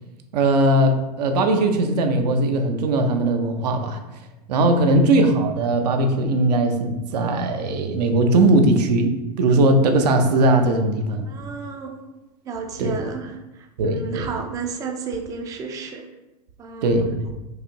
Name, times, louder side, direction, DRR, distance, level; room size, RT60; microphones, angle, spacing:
voice 1, 0.3-4.0 4.5-11.3 12.8-12.9 13.8-14.3 16.8-17.3, right 2 dB, 80° right, 5 dB, 0.7 m, -19 dB
voice 2, 11.2-12.0 12.4-16.1 16.6-17.2, right 4 dB, 15° right, 3 dB, 0.4 m, -32 dB
4.8 x 2.6 x 2.8 m, 1.0 s
supercardioid pair, 130°, 21 cm